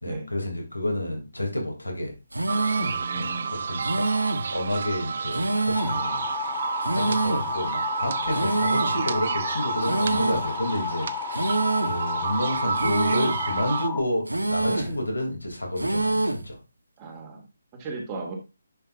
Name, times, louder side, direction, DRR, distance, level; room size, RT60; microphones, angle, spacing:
voice 1, 0.0-2.1 3.1-4.0 4.5-6.2 6.9-11.5 11.8-16.6, left 1 dB, 85° left, 1 dB, 3.1 m, -30 dB
sound 1, 2.3-3.0 3.8-4.5 5.3-6.0 6.8-7.5 8.3-9.0 9.8-10.5 11.3-12.0 12.8-13.5 14.3-15.0 15.8-16.5, right 2 dB, 80° right, 1.1 m, -26 dB
sound 2, 2.5-13.9, right 5 dB, 50° right, 0.5 m, -30 dB
voice 2, 2.8-3.5 14.7-15.0 17.0-17.4 17.7-18.4, right 3 dB, 25° right, 1 dB, 2.3 m, -36 dB
sound 3, 5.7-14.0, left 7 dB, 15° left, 1.3 m, -33 dB
10.5 x 5.8 x 2.7 m, 0.26 s
figure-of-eight pair, 145°, 0 cm